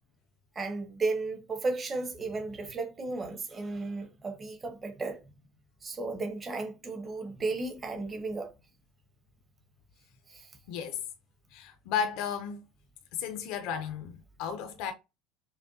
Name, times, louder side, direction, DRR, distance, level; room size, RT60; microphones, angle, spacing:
voice 1, 0.5-5.2 5.8-8.5 10.3-10.5, right 3 dB, 25° right, 1.0 m, -34 dB
voice 2, 11.5-12.6 13.1-14.9, left 7 dB, 70° left, 0.6 m, -34 dB
5.8 x 2.2 x 2.7 m
supercardioid pair, 125°, 0 cm